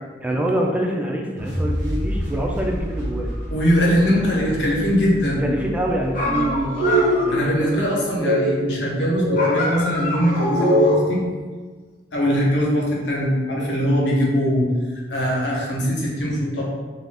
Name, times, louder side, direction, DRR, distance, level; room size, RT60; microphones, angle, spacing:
voice 1, 0.2-3.3 5.4-7.8 8.2-8.5, right 1 dB, 10° right, 0 dB, 0.3 m, -25 dB
sound 1, 1.4-7.5, equal, 75° right, 0.8 m, -30 dB
voice 2, 3.5-5.4 7.3-11.2 12.1-16.6, equal, 90° left, -4 dB, 0.9 m, -21 dB
sound 2, 6.1-7.5 9.3-11.1, left 2 dB, 45° left, 0.6 m, -26 dB
sound 3, 6.2-6.4 6.8-7.6 8.1-8.4 9.0-9.5 10.3-11.0, equal, 35° right, 0.9 m, -21 dB
2.6 x 2.4 x 3.4 m, 1.4 s
head